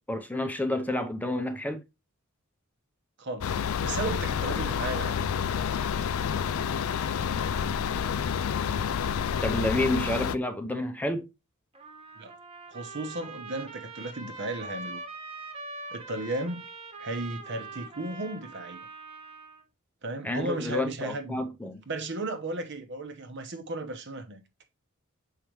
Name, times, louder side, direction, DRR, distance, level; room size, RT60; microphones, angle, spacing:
voice 1, 0.1-1.8 9.4-11.3 20.2-21.8, left 1 dB, 10° left, 0.6 m, -29 dB
voice 2, 3.2-5.3 12.2-12.3 12.7-15.0 15.9-16.6 17.0-18.8 20.0-21.4 21.9-24.4, right 2 dB, 60° right, 1.0 m, -35 dB
sound 1, 3.4-10.4, left 7 dB, 75° left, 0.4 m, -29 dB
Trumpet, 11.7-19.6, right 3 dB, 30° right, 1.3 m, -43 dB
6.5 x 4.8 x 3.1 m
head